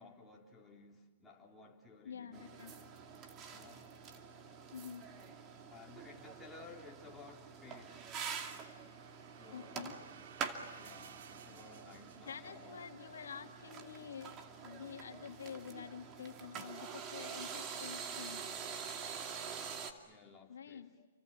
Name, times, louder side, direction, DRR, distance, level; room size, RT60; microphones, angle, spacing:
voice 1, 0.0-2.5 3.5-3.9 5.7-8.1 9.1-10.1 10.7-12.8 20.1-21.1, left 4 dB, 10° left, 3.5 m, -56 dB
voice 2, 2.0-2.7 4.7-5.0 9.5-10.0 12.3-18.4 20.5-20.9, left 7 dB, 80° left, 2.0 m, -48 dB
sound 1, 2.3-19.9, right 6 dB, 25° right, 2.4 m, -46 dB
sound 2, 7.8-13.0, right 8 dB, 60° right, 2.5 m, -58 dB
29.5 x 24.5 x 7.4 m
hypercardioid pair, 135°, 0 cm